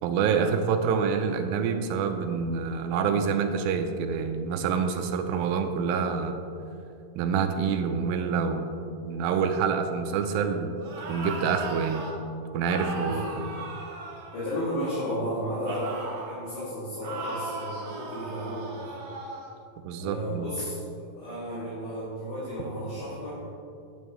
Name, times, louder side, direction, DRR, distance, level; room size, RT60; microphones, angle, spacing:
voice 1, 0.0-6.4 7.2-10.8 11.1-12.1 12.5-13.5 19.8-20.5, right 6 dB, 85° right, 7 dB, 2.4 m, -27 dB
sound 1, 10.8-12.1 12.7-14.9 15.6-16.4 17.0-19.5, right 2 dB, 55° right, 1.8 m, -37 dB
voice 2, 13.0-13.4 14.3-16.0 16.3-19.0 20.0-20.8 21.1-23.5, equal, 60° left, -12 dB, 4.0 m, -33 dB
10.0 x 9.0 x 3.2 m, 2.6 s
omnidirectional pair, 4.2 m